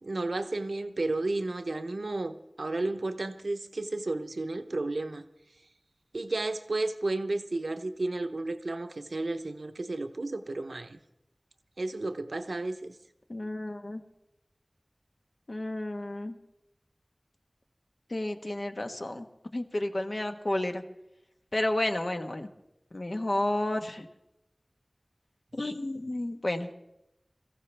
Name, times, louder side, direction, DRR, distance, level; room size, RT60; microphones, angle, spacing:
voice 1, 0.0-5.2 6.1-11.0 11.8-12.9, right 2 dB, 90° right, 0.7 m, -32 dB
voice 2, 13.3-14.0 15.5-16.4 18.1-19.3 19.5-20.8 21.5-22.5 22.9-24.1 25.6-26.7, left 1 dB, 60° left, 1.2 m, -31 dB
22.0 x 15.0 x 3.3 m
wide cardioid pair, 50°, 0 cm